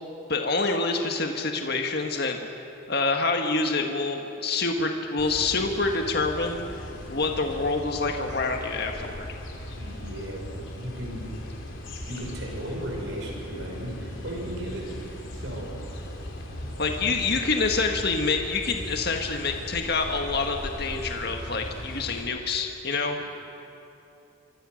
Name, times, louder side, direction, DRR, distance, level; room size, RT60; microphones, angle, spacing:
voice 1, 0.3-2.4 2.9-6.8 7.1-9.3 16.8-23.2, left 3 dB, 50° left, 3 dB, 1.7 m, -27 dB
sound 1, 5.2-22.2, equal, 70° left, 3.6 m, -38 dB
voice 2, 9.8-11.3 12.1-14.9 15.3-15.8 16.5-16.7 17.0-17.3, equal, 65° right, 0 dB, 5.7 m, -36 dB
26.5 x 24.5 x 6.5 m, 2.9 s
head